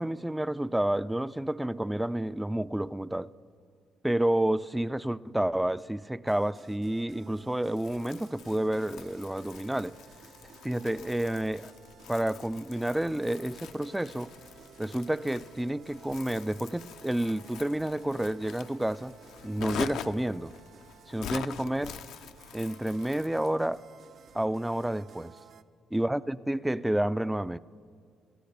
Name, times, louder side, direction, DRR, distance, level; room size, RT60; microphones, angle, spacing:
voice 1, 0.0-3.3 4.0-9.9 10.6-11.7 12.1-14.3 14.8-19.1 19.4-20.5 21.1-21.9 22.5-23.8 24.3-25.3 25.9-27.6, right 1 dB, 5° right, 17 dB, 0.3 m, -30 dB
sound 1, 6.2-25.6, right 8 dB, 60° right, 0.5 m, -55 dB
Crumpling crinkling, 7.8-23.6, left 9 dB, 85° left, 0.5 m, -45 dB
28.0 x 13.5 x 3.4 m, 2.1 s
cardioid pair, 90°, 0 cm